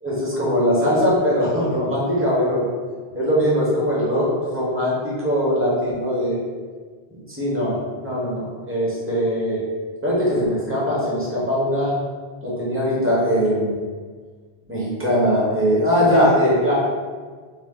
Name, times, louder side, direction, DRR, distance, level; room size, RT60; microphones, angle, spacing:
voice 1, 0.0-2.7 3.1-6.4 7.1-9.6 10.0-11.9 12.4-13.7 14.7-16.7, equal, 10° right, -7 dB, 1.0 m, -21 dB
3.0 x 2.9 x 3.6 m, 1.5 s
omnidirectional pair, 1.1 m